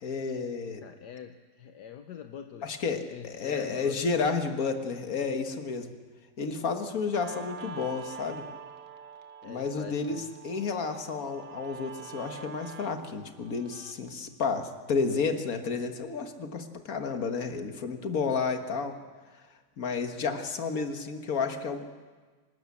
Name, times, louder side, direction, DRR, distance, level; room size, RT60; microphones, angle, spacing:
voice 1, 0.0-0.8 2.6-5.9 6.4-8.4 9.4-19.0 19.8-21.9, left 5 dB, 55° left, 6 dB, 1.9 m, -31 dB
voice 2, 0.8-4.1 9.4-10.3, left 8 dB, 75° left, 6 dB, 1.4 m, -44 dB
Guitar, 7.1-14.1, right 6 dB, 70° right, 1.6 m, -46 dB
26.0 x 13.0 x 8.4 m, 1.4 s
omnidirectional pair, 1.8 m